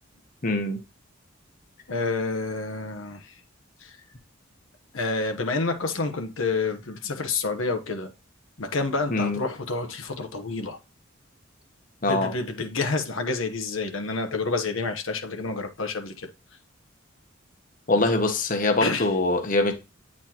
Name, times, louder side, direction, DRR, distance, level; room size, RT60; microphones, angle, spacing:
voice 1, 0.4-0.8 9.1-9.4 12.0-12.3 17.9-19.7, left 2 dB, 40° left, 1.0 m, -23 dB
voice 2, 1.9-3.3 3.8-4.0 4.9-8.1 8.6-10.8 12.0-16.3 18.8-19.1, left 3 dB, 70° left, 0.9 m, -28 dB
8.8 x 4.2 x 2.9 m
head